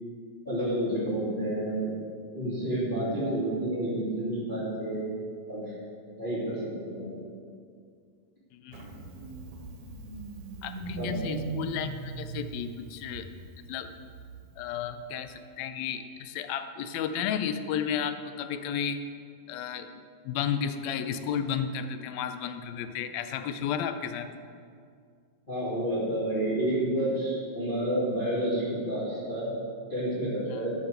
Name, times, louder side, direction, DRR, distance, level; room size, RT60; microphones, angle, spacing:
voice 1, 0.4-1.9 2.3-5.0 5.5-5.6 6.2-7.2 11.0-11.4 25.5-29.5 29.9-30.7, right 1 dB, 15° left, -9 dB, 2.7 m, -30 dB
voice 2, 8.5-8.9 10.6-13.3 13.7-13.9 14.6-19.0 19.5-19.9 20.2-24.3 30.5-30.7, left 8 dB, 75° left, 10 dB, 1.7 m, -33 dB
Engine starting, 8.7-15.2, right 4 dB, 75° right, 2.6 m, -40 dB
12.5 x 5.6 x 6.6 m, 2.2 s
omnidirectional pair, 3.4 m